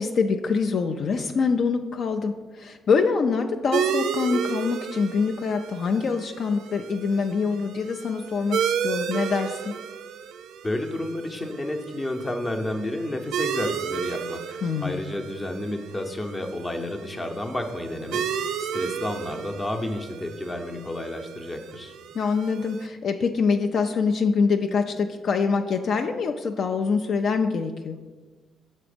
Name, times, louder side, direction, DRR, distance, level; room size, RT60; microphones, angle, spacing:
voice 1, 0.0-9.7 14.6-15.0 22.1-28.0, left 5 dB, 60° left, 6 dB, 0.4 m, -25 dB
sound 1, 3.7-22.9, right 7 dB, 80° right, 0.4 m, -33 dB
voice 2, 10.6-18.3 18.7-21.9, left 1 dB, 20° left, 5 dB, 0.7 m, -31 dB
5.9 x 4.2 x 5.0 m, 1.3 s
cardioid pair, 90°, 0 cm